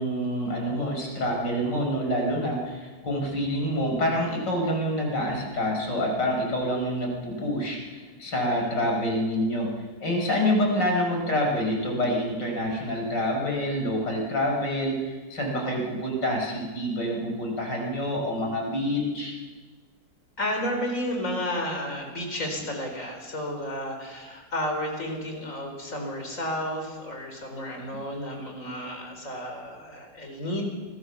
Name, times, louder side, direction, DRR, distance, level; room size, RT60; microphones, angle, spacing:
voice 1, 0.0-9.7 10.0-19.3, equal, 65° left, 0 dB, 6.3 m, -27 dB
voice 2, 20.4-30.6, left 1 dB, 40° left, 3 dB, 5.0 m, -32 dB
26.5 x 19.0 x 7.2 m, 1.3 s
omnidirectional pair, 2.0 m